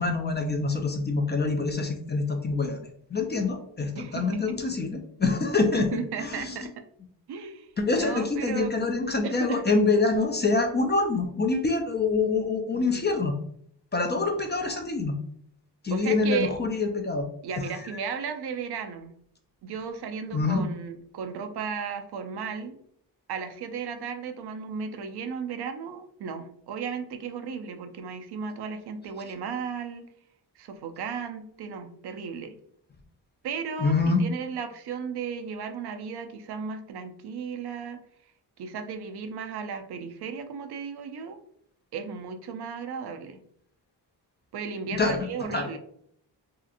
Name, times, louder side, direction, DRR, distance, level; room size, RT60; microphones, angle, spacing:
voice 1, 0.0-5.9 6.2-6.6 7.8-13.3 13.9-15.2 15.8-17.2 17.7-17.9 20.3-20.6 33.8-34.2 45.0-45.7, left 3 dB, 25° left, 4 dB, 0.4 m, -26 dB
voice 2, 4.0-4.6 5.7-6.7 7.3-7.7 7.9-8.7 9.2-9.8 12.7-13.1 15.9-16.5 17.4-19.1 19.6-22.8 23.3-30.0 30.6-32.5 33.4-38.0 38.6-41.4 41.9-43.4 44.5-45.8, right 6 dB, 65° right, 7 dB, 0.5 m, -35 dB
2.8 x 2.4 x 2.4 m, 0.67 s
cardioid pair, 65°, 43 cm